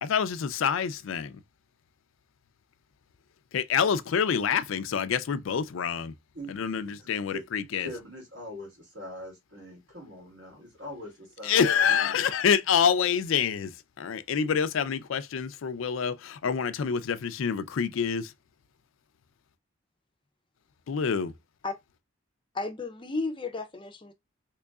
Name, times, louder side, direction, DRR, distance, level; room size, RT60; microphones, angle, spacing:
voice 1, 0.0-1.4 3.5-6.1 6.5-7.9 11.4-18.3 20.9-21.3, left 7 dB, 80° left, 0.4 m, -27 dB
voice 2, 6.3-7.4 7.8-11.6 11.9-12.2, left 1 dB, 65° right, 2.4 m, -42 dB
voice 3, 22.5-24.1, left 3 dB, 25° left, 0.5 m, -33 dB
3.7 x 3.0 x 2.3 m
head